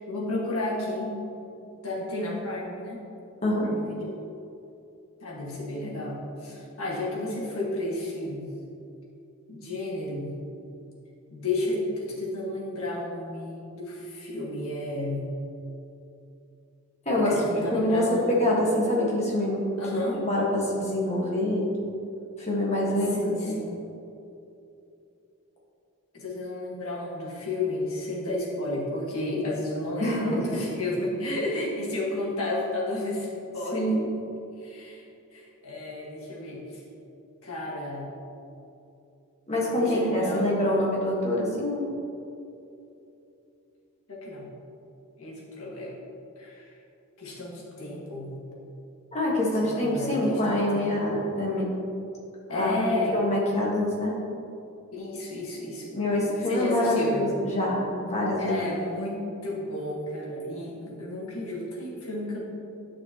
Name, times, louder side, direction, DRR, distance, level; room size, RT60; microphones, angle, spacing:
voice 1, 0.0-1.4 1.8-3.0 3.6-4.2 5.2-8.5 9.5-10.3 11.3-15.3 17.2-18.8 19.8-20.3 23.1-23.9 26.1-33.3 33.5-34.0 34.6-35.0 35.3-36.8 37.4-38.1 39.7-40.6 44.1-44.5 45.2-46.0 46.4-46.7 47.2-48.4 49.6-51.2 52.5-53.2 54.9-55.9 56.4-57.3 58.4-62.4, left 2 dB, 75° left, -4 dB, 1.7 m, -32 dB
voice 2, 17.0-19.6 20.2-21.7 22.4-23.6 30.0-30.5 33.7-34.1 39.5-41.8 49.1-51.7 52.5-52.7 53.1-54.1 55.9-58.6, left 1 dB, 30° left, -5 dB, 1.5 m, -25 dB
9.6 x 6.0 x 3.0 m, 2.8 s
head